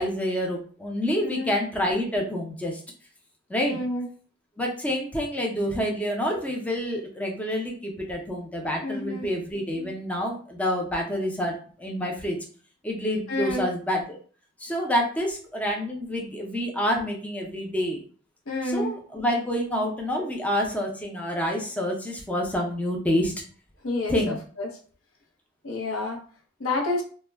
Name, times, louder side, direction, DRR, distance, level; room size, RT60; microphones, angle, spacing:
voice 1, 0.0-2.8 3.5-3.8 4.6-12.4 12.8-14.2 14.6-18.0 18.6-23.3 24.1-24.4, equal, 5° left, 0 dB, 0.4 m, -28 dB
voice 2, 1.2-1.5 3.7-4.1 8.8-9.2 13.3-13.7 18.5-18.9 23.8-24.7 25.6-26.2 26.6-27.0, left 2 dB, 85° left, 0 dB, 0.7 m, -29 dB
2.1 x 2.0 x 3.3 m, 0.42 s
head